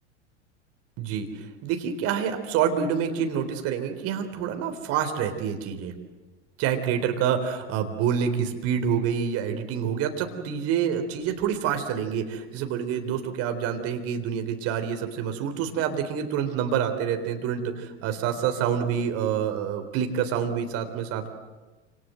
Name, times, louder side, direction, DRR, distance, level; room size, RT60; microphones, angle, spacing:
voice 1, 1.0-5.9 6.6-21.3, right 8 dB, 40° right, 6 dB, 3.8 m, -27 dB
28.0 x 27.0 x 7.8 m, 1.2 s
figure-of-eight pair, 80°, 35 cm